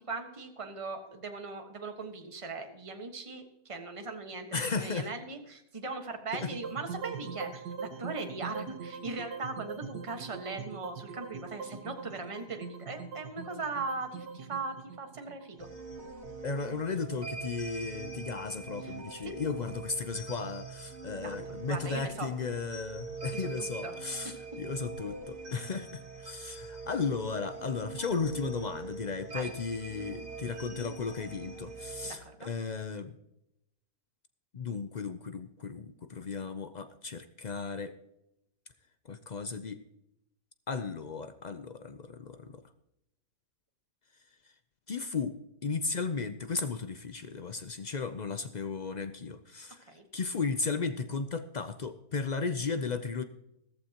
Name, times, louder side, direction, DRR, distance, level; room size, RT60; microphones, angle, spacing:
voice 1, 0.1-15.7 18.8-18.9 19.2-19.3 21.2-21.4 21.7-22.3 23.3-24.0 24.2-24.4 29.3-29.5 32.0-32.5 49.9-50.0, right 3 dB, 20° right, 4 dB, 1.4 m, -39 dB
voice 2, 4.5-5.1 6.3-6.5 16.4-33.1 34.5-37.9 39.1-39.8 40.7-42.6 44.9-45.3 45.6-49.8 50.1-53.2, left 4 dB, 75° left, 10 dB, 0.4 m, -35 dB
sound 1, 6.4-16.6, right 6 dB, 85° right, 1.7 m, -42 dB
sound 2, 15.6-32.1, right 4 dB, 45° right, 2.3 m, -43 dB
15.5 x 14.0 x 2.9 m, 0.84 s
omnidirectional pair, 1.7 m